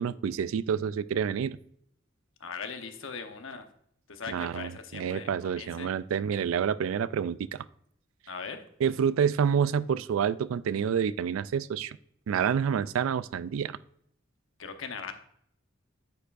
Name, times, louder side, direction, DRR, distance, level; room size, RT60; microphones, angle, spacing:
voice 1, 0.0-1.6 4.3-7.6 8.8-12.0 12.3-13.8, right 7 dB, 90° right, 18 dB, 0.3 m, -28 dB
voice 2, 2.4-3.7 4.1-5.9 8.3-8.6 14.6-15.1, left 5 dB, 80° left, 6 dB, 0.9 m, -39 dB
9.3 x 6.9 x 2.5 m, 0.68 s
head